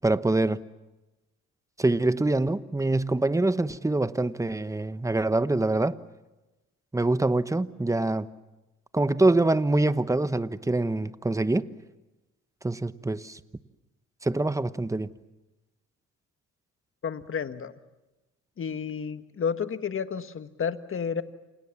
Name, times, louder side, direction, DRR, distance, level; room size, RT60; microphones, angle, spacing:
voice 1, 0.0-0.6 1.8-6.0 6.9-8.3 8.9-11.7 12.6-13.4 14.2-15.1, right 2 dB, 10° right, 13 dB, 1.1 m, -25 dB
voice 2, 17.0-17.7 18.6-21.2, left 6 dB, 45° left, 10 dB, 1.6 m, -31 dB
29.0 x 28.0 x 7.3 m, 1.0 s
cardioid pair, 90°, 30 cm